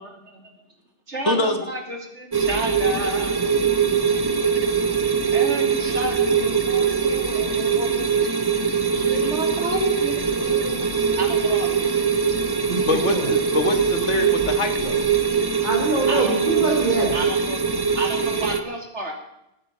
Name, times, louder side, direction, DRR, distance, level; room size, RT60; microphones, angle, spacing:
voice 1, 0.0-0.5 1.1-3.5 5.3-8.3 8.7-12.0 16.1-16.4 17.1-17.6 18.0-19.1, right 1 dB, 75° right, 3 dB, 3.3 m, -32 dB
voice 2, 1.3-1.6 12.8-15.0, left 2 dB, 80° left, 7 dB, 2.1 m, -24 dB
sound 1, 2.3-18.6, right 6 dB, 20° right, 1.0 m, -22 dB
voice 3, 12.7-13.4 15.6-17.2, right 1 dB, 40° right, -2 dB, 3.6 m, -25 dB
18.5 x 9.6 x 7.4 m, 0.85 s
omnidirectional pair, 1.2 m